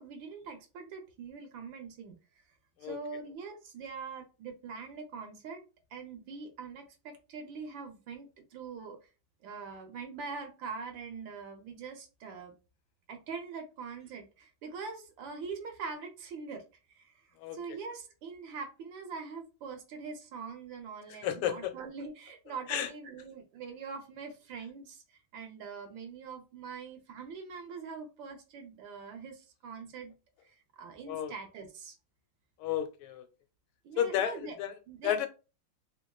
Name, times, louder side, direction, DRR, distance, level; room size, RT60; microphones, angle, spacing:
voice 1, 0.0-2.1 2.8-5.6 5.9-9.0 9.4-12.5 13.1-16.6 16.9-30.1 30.4-32.0 33.8-34.5 34.9-35.3, right 5 dB, 70° right, 1.4 m, -43 dB
voice 2, 21.2-21.7 22.7-22.9 31.1-31.3 32.6-33.3 34.0-34.7 35.0-35.3, left 10 dB, 80° left, 1.4 m, -32 dB
3.5 x 3.4 x 2.3 m
omnidirectional pair, 2.3 m